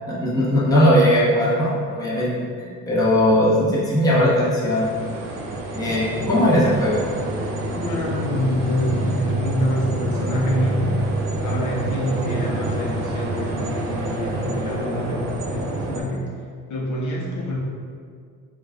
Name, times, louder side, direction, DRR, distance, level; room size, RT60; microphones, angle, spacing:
voice 1, 0.1-4.9 5.7-7.0, equal, 10° left, -7 dB, 0.8 m, -19 dB
sound 1, 4.4-16.0, right 2 dB, 90° right, 0.7 m, -27 dB
voice 2, 7.7-11.0 11.4-16.3 16.7-17.6, left 1 dB, 60° left, -3 dB, 0.8 m, -26 dB
3.8 x 2.4 x 3.4 m, 2.1 s
cardioid pair, 135°, 34 cm